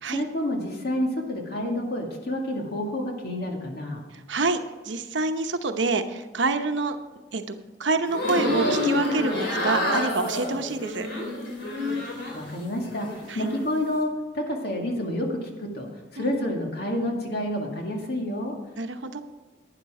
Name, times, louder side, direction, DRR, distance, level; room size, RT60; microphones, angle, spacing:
voice 1, 0.1-4.0 12.3-15.9 16.1-18.5, left 1 dB, 60° left, 1 dB, 2.2 m, -29 dB
voice 2, 4.3-4.6 4.8-7.0 7.3-11.1 13.3-13.5 16.2-16.4 18.8-19.2, right 3 dB, 85° right, 7 dB, 0.9 m, -27 dB
sound 1, 8.1-12.5 12.8-13.6, left 1 dB, 85° left, 3.7 m, -28 dB
12.0 x 9.8 x 4.9 m, 1.2 s
head